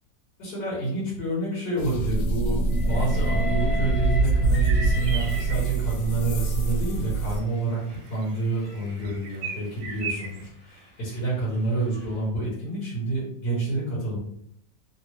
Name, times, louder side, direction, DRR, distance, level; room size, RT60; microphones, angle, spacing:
voice 1, 0.4-14.2, right 2 dB, 60° left, -9 dB, 1.9 m, -28 dB
sound 1, 1.8-7.4, right 2 dB, 90° left, 1.4 m, -24 dB
Train, 2.7-6.1 7.0-12.2, left 2 dB, 35° left, 1.4 m, -40 dB
sound 2, 4.7-5.9 6.7-6.8 7.2-10.5, right 5 dB, 70° right, 1.2 m, -37 dB
3.6 x 2.5 x 3.1 m, 0.68 s
omnidirectional pair, 2.0 m